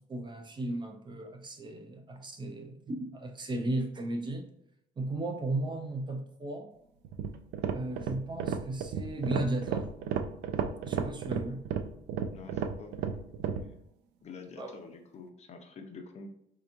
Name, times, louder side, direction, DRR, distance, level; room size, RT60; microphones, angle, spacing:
voice 1, 0.0-4.5 5.0-6.7 7.7-9.9 10.8-11.7 14.6-14.8, right 2 dB, 25° right, 4 dB, 0.5 m, -35 dB
sound 1, 7.0-13.7, right 7 dB, 85° right, 0.4 m, -33 dB
voice 2, 12.3-13.1 13.5-13.7 14.2-16.3, left 4 dB, 40° left, 4 dB, 0.7 m, -47 dB
4.5 x 2.8 x 2.5 m, 0.77 s
cardioid pair, 110°, 17 cm